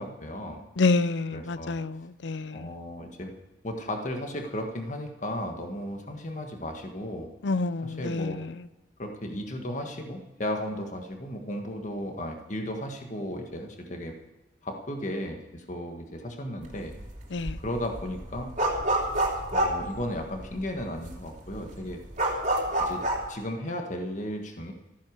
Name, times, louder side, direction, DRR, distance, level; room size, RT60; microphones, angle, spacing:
voice 1, 0.0-0.6 1.3-1.8 2.5-3.3 3.6-7.3 7.8-8.4 9.0-14.1 14.6-16.9 17.6-18.5 19.5-22.0 22.8-23.0 23.3-24.7, left 1 dB, 45° left, 4 dB, 1.5 m, -35 dB
voice 2, 0.8-2.7 7.4-8.4 17.3-17.6, left 3 dB, 75° left, 16 dB, 0.6 m, -27 dB
sound 1, 16.7-17.1 17.4-20.6 21.0-21.1 21.4-23.3, right 1 dB, 45° right, 2.9 m, -27 dB
14.0 x 10.0 x 6.4 m, 1.1 s
head